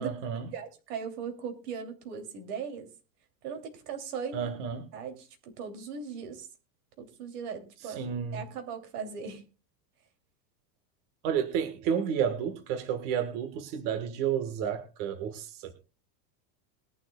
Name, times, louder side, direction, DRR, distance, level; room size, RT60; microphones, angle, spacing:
voice 1, 0.0-0.5 4.3-4.9 7.8-8.4 11.2-15.7, right 8 dB, 45° right, 7 dB, 1.5 m, -31 dB
voice 2, 0.5-2.9 3.4-4.5 4.9-6.5 7.0-8.0 8.3-9.4, right 6 dB, 65° right, 4 dB, 3.0 m, -38 dB
21.5 x 11.0 x 2.3 m, 0.32 s
supercardioid pair, 170°, 50 cm